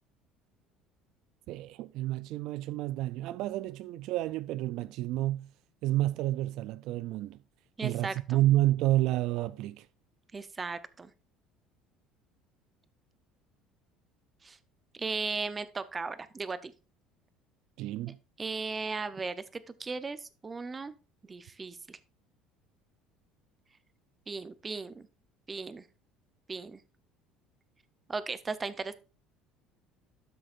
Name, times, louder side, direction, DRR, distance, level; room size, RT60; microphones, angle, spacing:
voice 1, 1.5-5.5 5.8-7.4 7.8-9.9 17.8-18.2, right 15 dB, 65° right, 0.3 m, -30 dB
voice 2, 7.8-8.4 10.3-11.1 14.4-14.6 14.9-16.7 18.1-20.9 21.3-22.0 24.3-25.1 25.5-25.8 26.5-26.8 28.1-28.9, right 4 dB, 20° right, 0.6 m, -37 dB
12.0 x 6.3 x 2.5 m
cardioid pair, 135°, 0 cm